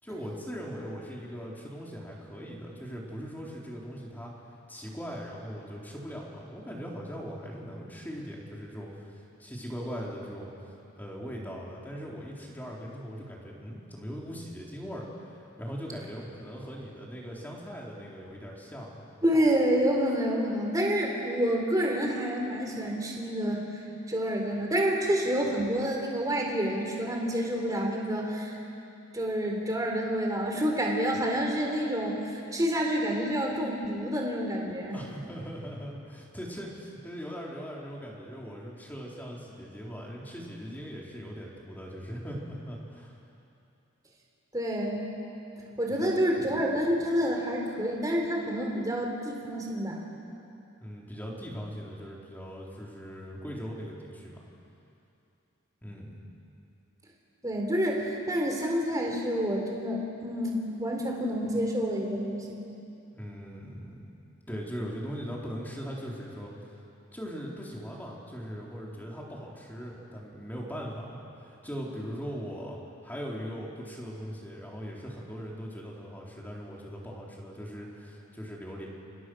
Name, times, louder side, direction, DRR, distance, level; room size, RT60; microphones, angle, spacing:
voice 1, 0.0-4.3 4.7-10.5 11.0-19.0 34.9-43.1 45.7-46.4 50.8-54.4 55.8-56.2 63.1-63.9 64.5-66.5 67.1-72.8 73.0-78.9, equal, 10° left, -3 dB, 4.0 m, -40 dB
voice 2, 19.2-23.6 24.1-28.6 29.1-35.0 44.5-45.1 45.8-50.0 57.4-62.6, equal, 15° right, 0 dB, 4.0 m, -28 dB
30.0 x 27.0 x 6.4 m, 2.8 s
head